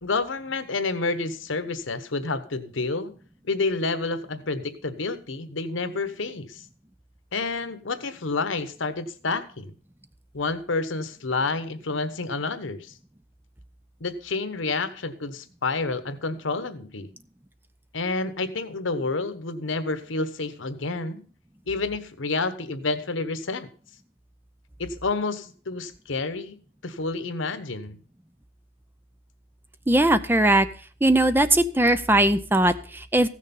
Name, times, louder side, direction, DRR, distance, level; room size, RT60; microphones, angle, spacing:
voice 1, 0.0-3.1 3.4-6.6 7.3-9.7 10.3-12.9 14.0-17.1 17.9-21.2 21.7-23.7 24.8-26.5 26.8-28.0, left 3 dB, 85° left, 11 dB, 1.1 m, -29 dB
voice 2, 29.9-30.7 31.0-33.3, right 1 dB, 10° right, 11 dB, 0.5 m, -20 dB
15.5 x 6.5 x 5.4 m, 0.42 s
head